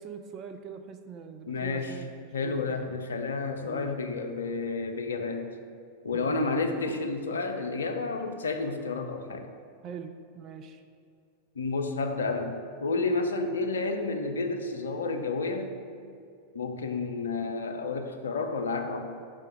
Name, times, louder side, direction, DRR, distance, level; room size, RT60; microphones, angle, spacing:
voice 1, 0.0-2.1 2.4-2.9 3.6-4.0 6.1-6.8 9.8-10.8, right 6 dB, 35° right, 7 dB, 0.4 m, -42 dB
voice 2, 1.5-2.0 2.3-5.5 6.0-9.5 11.6-15.7 16.5-19.1, left 3 dB, 70° left, 5 dB, 0.5 m, -30 dB
5.5 x 3.5 x 5.1 m, 2.4 s
figure-of-eight pair, 90°, 0 cm